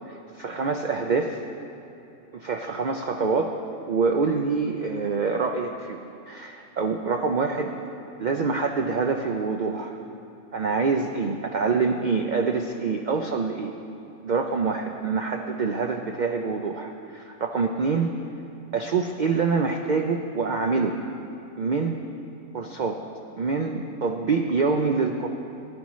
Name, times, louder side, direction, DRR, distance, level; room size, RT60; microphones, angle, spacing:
voice 1, 0.1-1.4 2.3-3.6 3.9-6.0 6.3-7.7 8.2-10.0 10.5-13.7 14.2-18.1 18.7-20.9 21.5-22.0 22.5-23.0 23.4-25.3, right 4 dB, 85° right, 3 dB, 0.4 m, -25 dB
15.5 x 11.0 x 3.1 m, 2.7 s
omnidirectional pair, 1.4 m